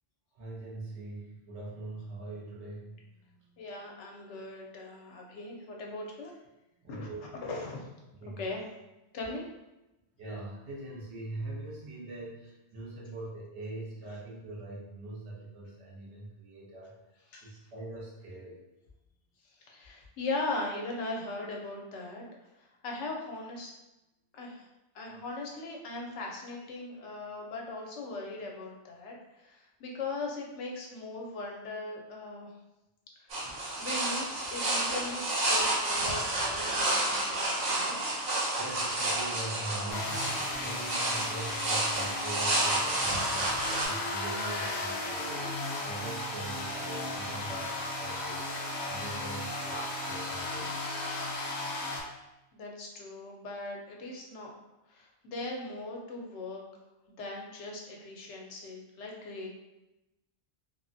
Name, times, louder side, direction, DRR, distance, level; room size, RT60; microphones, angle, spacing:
voice 1, 0.3-3.4 6.8-7.2 8.2-8.4 10.2-16.9 17.4-18.6 38.6-48.5 48.9-50.7, right 2 dB, 75° right, -5 dB, 1.1 m, -42 dB
voice 2, 3.6-6.3 6.9-7.1 7.4-7.9 8.4-8.7 9.1-9.5 17.3-17.5 19.6-22.2 22.6-23.7 24.3-24.7 24.9-32.5 33.2-33.4 33.8-38.1 52.5-54.5 54.9-56.6 57.1-59.5, left 2 dB, 90° left, 0 dB, 0.9 m, -39 dB
sound 1, 33.3-43.9, right 1 dB, 50° right, 0.6 m, -30 dB
sound 2, 39.9-52.0, left 2 dB, 60° left, 0.7 m, -35 dB
3.2 x 2.0 x 2.6 m, 0.96 s
omnidirectional pair, 1.2 m